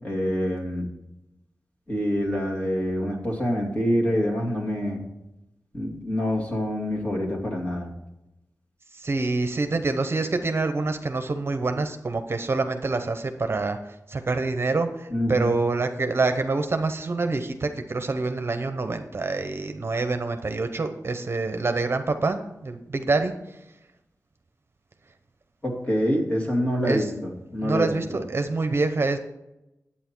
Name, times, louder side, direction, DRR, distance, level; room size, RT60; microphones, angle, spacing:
voice 1, 0.0-0.9 1.9-5.0 5.7-7.9 15.1-15.5 25.6-27.1 27.5-27.9, equal, 25° left, -2 dB, 2.7 m, -26 dB
voice 2, 8.9-13.8 14.1-23.6 26.8-27.1 27.6-29.2, right 3 dB, 45° right, 7 dB, 0.8 m, -26 dB
9.4 x 8.6 x 4.6 m, 0.90 s
wide cardioid pair, 100°, 6 cm